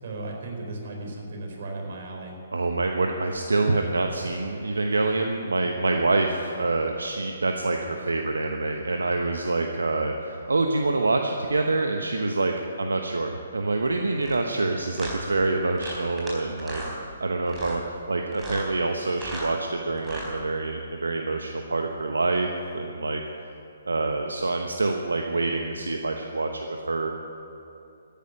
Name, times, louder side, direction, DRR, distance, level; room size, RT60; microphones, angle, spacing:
voice 1, 0.0-2.4, right 2 dB, 55° right, 0 dB, 4.4 m, -35 dB
voice 2, 2.5-17.8 18.1-22.5 22.7-23.2 23.9-27.1, right 3 dB, 80° right, 4 dB, 1.1 m, -26 dB
sound 1, 14.2-14.4 14.9-15.2 15.8-16.3 16.6-17.0 17.5-17.8 18.3-18.7 19.1-19.5 20.0-20.3, right 1 dB, 10° right, 4.2 m, -37 dB
14.0 x 10.5 x 9.8 m, 2.8 s
figure-of-eight pair, 135°, 0 cm